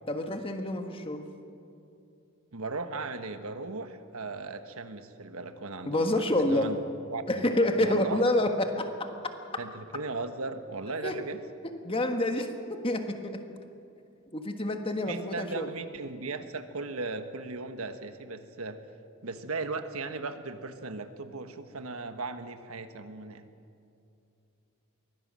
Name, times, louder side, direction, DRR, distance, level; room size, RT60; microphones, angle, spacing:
voice 1, 0.1-1.3 5.8-6.7 7.3-9.3 11.0-11.2 11.8-13.4 14.3-15.7, left 1 dB, 25° left, 6 dB, 1.5 m, -28 dB
voice 2, 2.5-6.8 7.1-7.5 7.8-8.2 9.6-11.4 15.1-18.8 19.2-23.5, right 3 dB, 90° right, 9 dB, 1.4 m, -37 dB
23.0 x 17.0 x 7.6 m, 2.7 s
head